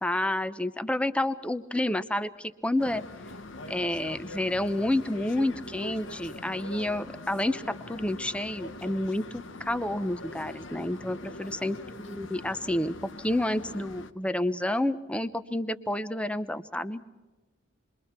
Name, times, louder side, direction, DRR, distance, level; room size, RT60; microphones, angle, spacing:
voice 1, 0.0-3.0 3.7-17.0, left 1 dB, 5° left, 12 dB, 0.7 m, -29 dB
sound 1, 2.8-14.1, left 2 dB, 70° left, 1.0 m, -43 dB
28.5 x 22.5 x 4.4 m, 1.2 s
head